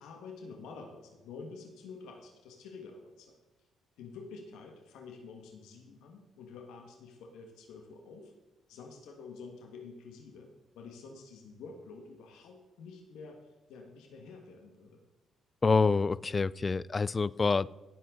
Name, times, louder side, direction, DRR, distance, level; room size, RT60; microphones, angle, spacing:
voice 1, 0.0-3.4 4.0-8.3 8.7-13.4 13.7-15.0, left 4 dB, 90° left, 2 dB, 1.7 m, -48 dB
voice 2, 15.6-17.7, left 4 dB, 30° left, 20 dB, 0.3 m, -27 dB
17.0 x 7.7 x 3.9 m, 1.2 s
cardioid pair, 90°, 0 cm